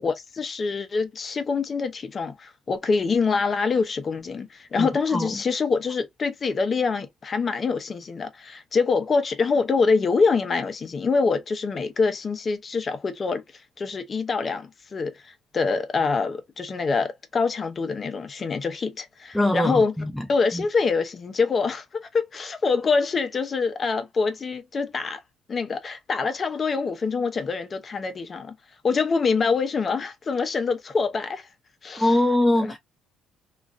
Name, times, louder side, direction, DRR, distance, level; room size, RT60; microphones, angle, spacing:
voice 1, 0.0-13.4 13.8-19.9 20.3-25.2 25.5-28.5 28.8-31.5 31.8-32.1 32.6-32.7, left 4 dB, 35° left, 0.7 m, -25 dB
voice 2, 4.8-5.3 19.3-20.3 20.5-20.6 32.0-32.8, left 1 dB, ahead, 0.3 m, -22 dB
3.0 x 2.4 x 2.5 m
cardioid pair, 115°, 0 cm